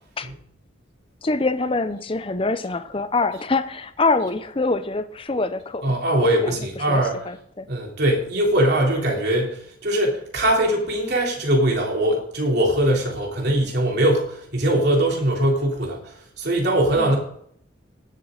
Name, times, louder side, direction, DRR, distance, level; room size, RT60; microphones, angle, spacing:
voice 1, 1.2-7.7 17.0-17.1, left 3 dB, 30° left, 12 dB, 0.6 m, -25 dB
voice 2, 5.8-7.2 7.7-17.2, right 1 dB, 55° right, -1 dB, 3.4 m, -21 dB
18.5 x 7.6 x 3.9 m, 0.67 s
head